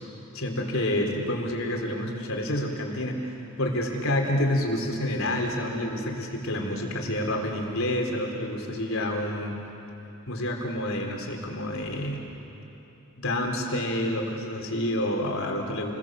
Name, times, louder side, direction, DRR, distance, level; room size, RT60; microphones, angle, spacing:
voice 1, 0.3-9.5 10.3-12.3 13.2-15.9, left 1 dB, 75° left, 1 dB, 3.9 m, -28 dB
30.0 x 22.0 x 7.7 m, 3.0 s
head